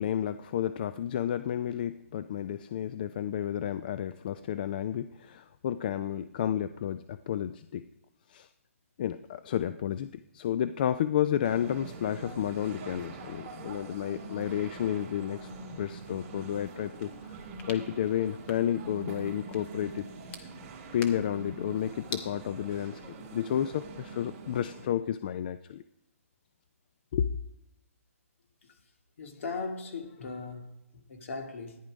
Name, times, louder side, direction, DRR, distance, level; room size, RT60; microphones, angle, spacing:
voice 1, 0.0-7.8 8.3-8.5 9.0-17.4 17.7-20.1 20.9-23.0 23.3-25.8 27.1-27.3, left 10 dB, 35° left, 0.4 m, -31 dB
sound 1, 11.4-24.9, right 3 dB, 30° right, 2.2 m, -44 dB
sound 2, 17.1-22.3, left 5 dB, 15° left, 1.0 m, -48 dB
voice 2, 29.2-31.8, left 4 dB, 60° left, 2.4 m, -38 dB
14.5 x 10.5 x 5.1 m
hypercardioid pair, 160°, 8 cm